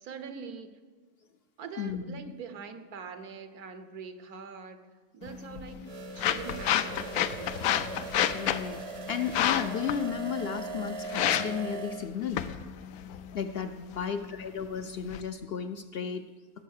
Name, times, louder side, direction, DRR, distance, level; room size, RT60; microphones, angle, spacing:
voice 1, 0.0-0.7 1.6-4.8 5.1-5.8 6.1-8.0 13.9-14.4, right 6 dB, 90° right, 9 dB, 1.5 m, -44 dB
voice 2, 1.8-2.2 8.3-8.8 9.1-12.4 13.3-16.2, left 7 dB, 65° left, 9 dB, 0.6 m, -34 dB
sound 1, 5.2-15.2, left 10 dB, 85° left, 1.1 m, -32 dB
sound 2, 5.9-12.1, right 5 dB, 40° right, 0.5 m, -40 dB
17.5 x 7.0 x 6.5 m, 1.5 s
omnidirectional pair, 1.5 m